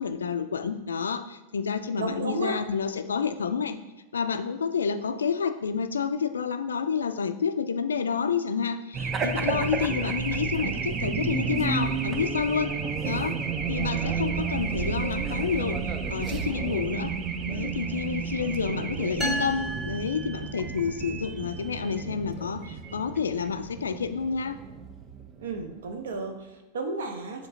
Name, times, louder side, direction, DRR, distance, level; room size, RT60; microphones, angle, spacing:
voice 1, 0.0-3.8 4.1-12.7 13.0-13.4 13.7-17.1 17.4-24.6, left 6 dB, 70° left, 10 dB, 0.3 m, -29 dB
voice 2, 1.9-2.6 18.7-18.9 25.4-27.5, right 3 dB, 60° right, 4 dB, 0.7 m, -33 dB
Race car auto racing / Alarm, 8.9-25.9, right 5 dB, 25° right, 0.4 m, -31 dB
sound 1, 19.2-21.0, equal, ahead, 0.8 m, -33 dB
7.3 x 2.8 x 2.6 m, 1.0 s
figure-of-eight pair, 90°, 0 cm